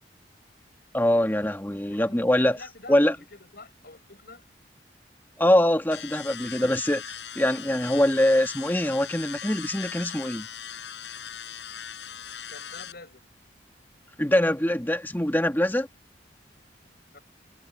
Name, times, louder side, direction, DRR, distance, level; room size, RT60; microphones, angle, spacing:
voice 1, 0.9-2.6 2.9-3.1 5.4-10.5 14.2-15.9, left 1 dB, 10° left, 1.7 m, -23 dB
voice 2, 1.9-4.4 12.5-13.2 17.1-17.2, left 3 dB, 60° left, 6.8 m, -47 dB
sound 1, 5.9-12.9, left 9 dB, 75° left, 6.1 m, -39 dB
head